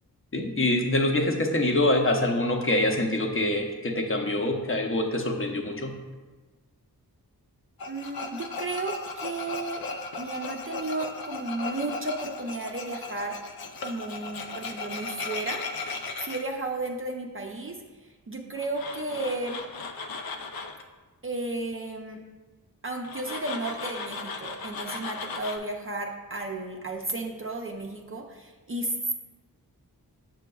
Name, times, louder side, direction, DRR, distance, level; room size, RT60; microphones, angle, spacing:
voice 1, 0.3-6.0, left 1 dB, 35° left, 3 dB, 0.8 m, -25 dB
Tools, 7.8-16.4 18.6-20.8 23.0-25.6, left 4 dB, 75° left, 0.6 m, -36 dB
voice 2, 7.9-9.0 9.2-9.8 10.2-13.4 13.8-15.6 16.2-17.8 18.3-19.6 21.2-22.2 22.8-29.1, right 2 dB, 35° right, 1 dB, 0.5 m, -33 dB
7.6 x 5.8 x 2.3 m, 1.3 s
wide cardioid pair, 75°, 37 cm